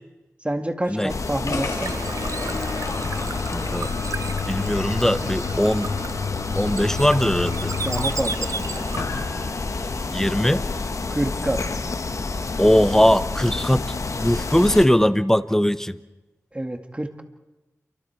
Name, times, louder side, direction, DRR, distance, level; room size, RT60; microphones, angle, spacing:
voice 1, 0.4-2.0 7.7-8.9 11.1-11.7 16.5-17.2, right 1 dB, 20° right, 6 dB, 2.0 m, -28 dB
Bird / Water, 0.9-9.3, right 4 dB, 70° right, 0.7 m, -35 dB
sound 1, 1.1-14.9, left 3 dB, 70° left, 1.2 m, -29 dB
sound 2, 1.5-10.2, left 5 dB, 85° left, 2.8 m, -32 dB
voice 2, 3.5-3.9 4.5-5.9 6.5-7.7 10.1-10.7 12.6-16.0, equal, 10° left, 14 dB, 0.9 m, -20 dB
28.5 x 24.5 x 4.7 m, 1.1 s
cardioid pair, 45°, 6 cm